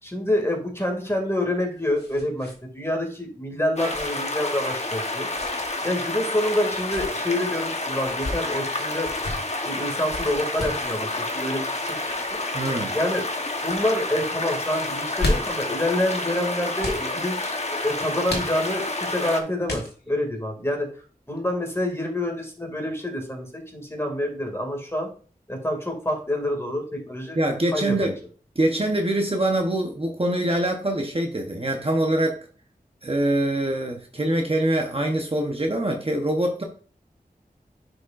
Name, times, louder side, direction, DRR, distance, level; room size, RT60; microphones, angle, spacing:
voice 1, 0.0-2.5 2.7-5.3 5.8-9.1 9.6-11.8 12.9-13.3 13.6-20.9 21.3-25.1 25.5-27.4 27.7-28.1, left 1 dB, 15° left, 1 dB, 2.3 m, -27 dB
sound 1, 1.2-2.6 2.9-3.0 3.9-4.2 5.3-5.7 6.6-7.1 8.0-8.4 9.0-9.4 10.1-10.9 12.0-12.3 13.0-13.4 13.6-13.8 14.9-15.7 16.8-17.1 18.3-18.9 19.7-20.2, left 2 dB, 90° left, 1.5 m, -32 dB
sound 2, 3.8-19.4, left 2 dB, 40° left, 1.1 m, -29 dB
voice 2, 12.5-12.9 27.3-28.2 28.6-32.4 33.0-36.6, right 1 dB, 35° right, 3 dB, 0.9 m, -24 dB
10.5 x 5.0 x 2.5 m, 0.41 s
wide cardioid pair, 60°, 17 cm